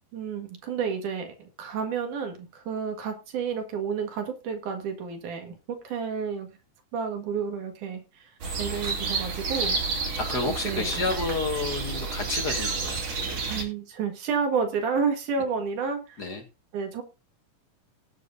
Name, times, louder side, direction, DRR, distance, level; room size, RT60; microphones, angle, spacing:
voice 1, 0.1-6.5 6.9-8.3 8.6-9.8 10.6-11.0 13.5-16.2 16.7-17.0, right 6 dB, 80° right, 5 dB, 3.2 m, -30 dB
sound 1, 8.4-13.6, right 4 dB, 55° right, 3.9 m, -30 dB
voice 2, 10.1-13.5 16.2-16.4, left 3 dB, 40° left, 4 dB, 1.9 m, -30 dB
19.5 x 7.5 x 2.6 m, 0.29 s
omnidirectional pair, 3.5 m